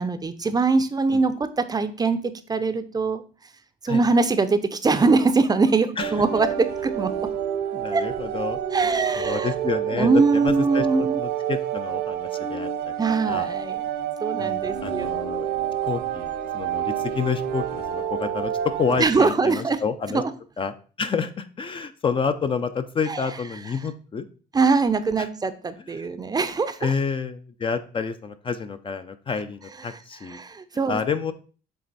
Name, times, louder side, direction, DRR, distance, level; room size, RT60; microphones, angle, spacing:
voice 1, 0.0-3.2 3.8-7.1 7.9-8.1 8.7-9.5 9.9-11.2 13.0-13.8 14.2-15.1 19.0-19.8 20.1-20.3 23.1-23.2 24.5-26.9 29.9-30.0 30.3-31.0, right 4 dB, 25° right, 11 dB, 0.6 m, -22 dB
sound 1, 6.0-19.0, right 10 dB, 90° right, 1.2 m, -28 dB
voice 2, 7.7-12.9 13.3-13.5 14.4-15.5 15.8-20.2 20.6-24.3 25.2-25.3 25.9-26.0 26.8-30.4 30.9-31.3, left 5 dB, 30° left, 10 dB, 0.5 m, -29 dB
7.6 x 3.3 x 4.1 m, 0.39 s
cardioid pair, 110°, 17 cm